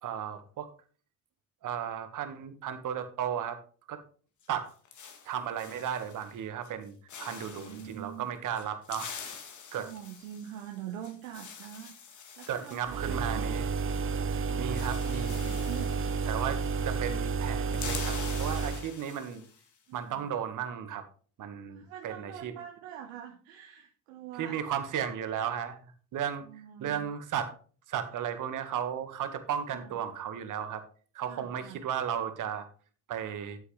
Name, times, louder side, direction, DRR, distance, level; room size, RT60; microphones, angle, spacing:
voice 1, 0.0-0.7 1.6-3.6 3.9-4.0 4.5-4.7 5.2-9.1 9.7-9.9 12.5-13.7 14.6-15.7 16.3-19.4 19.9-21.0 21.4-22.5 24.4-25.8 26.1-26.4 26.8-27.5 27.9-30.8 31.1-32.7 33.1-33.6, right 8 dB, 50° right, 9 dB, 1.7 m, -35 dB
sound 1, 4.4-6.4 6.6-6.8 7.1-8.0 8.6-14.0 14.3-14.4 14.6-17.0 17.3-19.7, left 6 dB, 45° left, 2.2 m, -45 dB
voice 2, 7.3-8.3 9.7-12.0 12.4-13.4 14.5-16.0 19.9-20.3 21.7-24.6 26.4-27.0 29.7-30.0 31.2-31.8, right 10 dB, 75° right, 3 dB, 1.2 m, -44 dB
sound 2, 12.9-18.9, right 4 dB, 30° right, 0.9 m, -31 dB
10.5 x 8.1 x 3.3 m, 0.40 s
hypercardioid pair, 65°, 39 cm